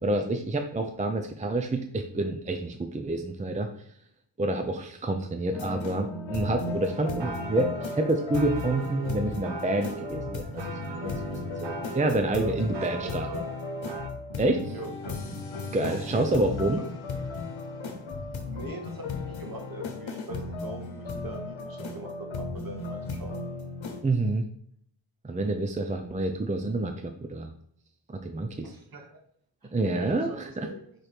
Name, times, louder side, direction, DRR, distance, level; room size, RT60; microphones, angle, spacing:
voice 1, 0.0-3.7 4.4-11.1 11.5-13.3 14.4-14.7 15.7-16.8 24.0-24.5 25.2-27.5 28.1-28.7 29.7-30.7, right 2 dB, 15° right, 5 dB, 0.5 m, -28 dB
sound 1, 5.5-24.0, left 3 dB, 85° left, 1.0 m, -35 dB
sound 2, 6.8-14.1, right 5 dB, 65° right, 0.8 m, -40 dB
voice 2, 12.1-13.4 14.7-15.2 15.7-16.9 18.4-23.4 28.6-29.2 29.6-30.8, right 2 dB, 50° right, 3 dB, 1.3 m, -41 dB
4.5 x 4.5 x 5.0 m, 0.65 s
wide cardioid pair, 115°, 45 cm